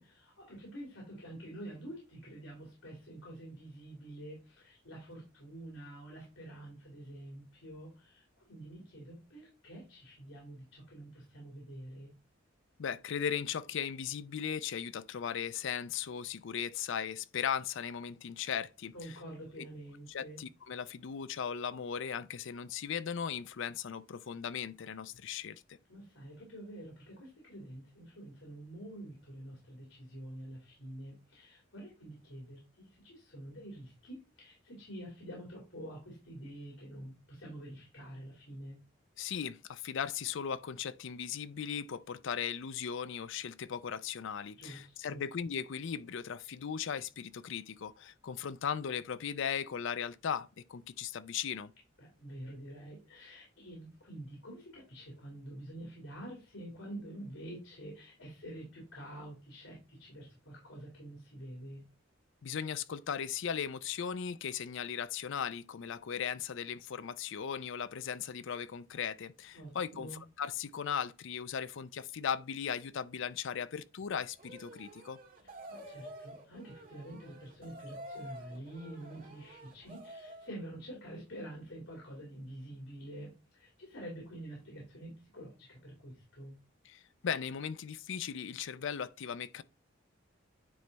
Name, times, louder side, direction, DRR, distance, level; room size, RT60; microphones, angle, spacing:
voice 1, 0.0-12.1 18.9-20.4 25.9-38.8 44.6-45.3 52.0-61.8 69.5-70.2 75.7-86.5, right 1 dB, 85° left, 2.6 m, -47 dB
voice 2, 12.8-19.2 19.6-19.7 20.1-25.8 39.2-51.7 62.4-70.1 70.4-75.2 86.8-89.6, left 7 dB, 65° left, 0.4 m, -37 dB
sound 1, 74.4-80.5, right 1 dB, 45° right, 1.7 m, -49 dB
9.4 x 3.4 x 4.0 m
head